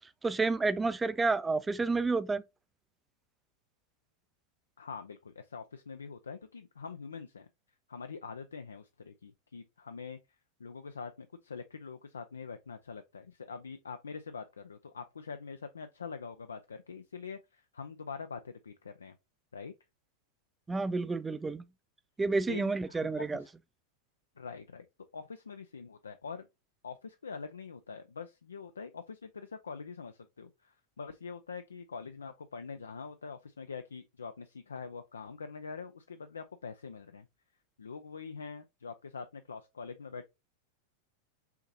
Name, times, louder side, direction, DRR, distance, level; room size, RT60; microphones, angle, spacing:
voice 1, 0.2-2.4 20.7-21.6 22.2-23.4, right 3 dB, 10° right, 0.3 m, -30 dB
voice 2, 4.8-7.5 7.9-10.2 10.6-19.2 19.5-19.7 22.5-23.5 24.4-24.9 25.1-26.5 26.8-37.3 37.8-40.3, left 5 dB, 70° left, 0.3 m, -44 dB
5.6 x 2.8 x 2.7 m
figure-of-eight pair, 90°, 0 cm